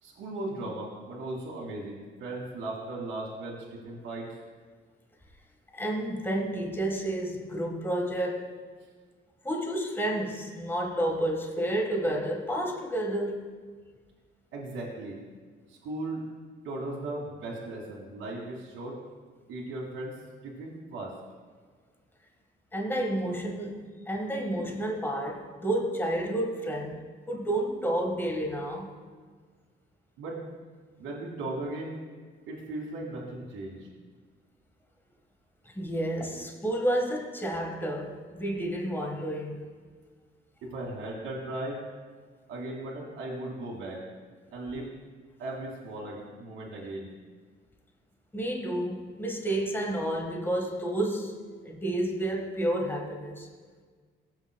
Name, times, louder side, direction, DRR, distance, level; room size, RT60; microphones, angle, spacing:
voice 1, 0.0-4.3 14.5-15.2 15.7-16.2 16.6-18.9 19.5-20.1 20.4-21.1 30.2-30.4 31.0-32.0 32.5-33.9 40.6-41.8 42.5-44.0 44.5-44.9 45.4-47.1, right 2 dB, 90° right, -3 dB, 2.2 m, -37 dB
voice 2, 5.7-8.6 9.4-13.4 22.7-27.0 27.3-28.9 35.7-39.6 48.3-51.3 51.6-53.5, right 1 dB, 10° left, 1 dB, 1.5 m, -30 dB
17.0 x 8.0 x 2.2 m, 1.6 s
cardioid pair, 90°, 20 cm